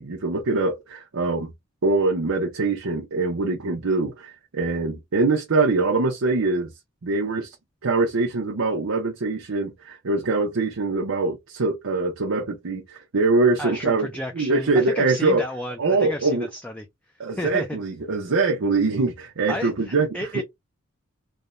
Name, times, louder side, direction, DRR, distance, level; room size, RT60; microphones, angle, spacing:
voice 1, 0.0-1.5 1.8-6.7 7.0-7.5 7.8-14.1 14.3-15.4 15.8-16.5 17.2-20.1 20.3-20.4, right 3 dB, 90° right, 0.7 m, -23 dB
voice 2, 13.6-16.9 17.3-17.8 19.5-20.4, left 1 dB, 5° left, 0.3 m, -32 dB
3.3 x 2.2 x 2.5 m
head